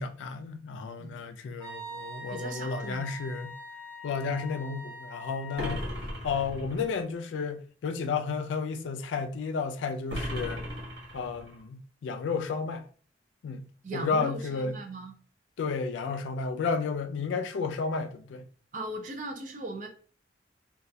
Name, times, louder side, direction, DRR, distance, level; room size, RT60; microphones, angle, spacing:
voice 1, 0.0-3.5 4.0-10.6 11.1-12.9 13.4-14.8 15.6-18.4, left 5 dB, 85° left, 0.3 m, -32 dB
Wind instrument woodwind instrument, 1.6-5.9, equal, 10° left, 0.8 m, -43 dB
voice 2, 2.3-3.1 13.8-15.1 18.7-19.9, right 2 dB, 45° right, 0.4 m, -38 dB
sound 1, 5.6-7.0 10.1-11.6, equal, 75° right, 0.8 m, -36 dB
2.3 x 2.1 x 2.6 m
head